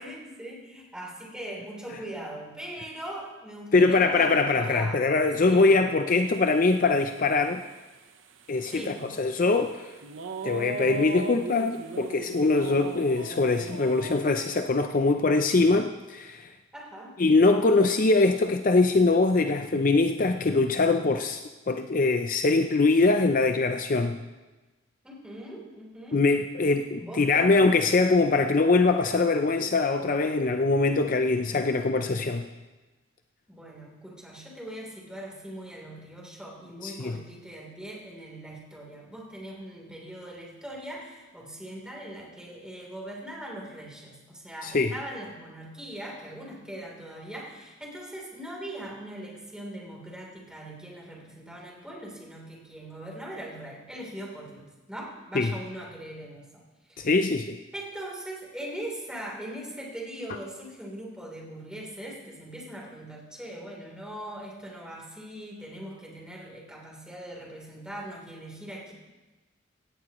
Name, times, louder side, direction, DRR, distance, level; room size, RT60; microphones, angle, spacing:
voice 1, 0.0-5.1 5.4-5.8 8.6-9.1 16.7-17.1 25.0-26.2 27.0-27.5 33.5-56.6 56.9-57.1 57.7-68.9, right 1 dB, 5° right, -3 dB, 3.4 m, -41 dB
voice 2, 3.7-7.6 8.5-9.9 10.4-16.5 17.2-21.4 21.7-24.2 26.1-32.5 36.8-37.2 44.6-44.9 55.3-55.5 57.0-57.6, left 3 dB, 45° left, 6 dB, 0.5 m, -23 dB
sound 1, 6.3-14.6, right 3 dB, 80° right, 1.0 m, -39 dB
17.0 x 16.0 x 3.1 m, 1.2 s
head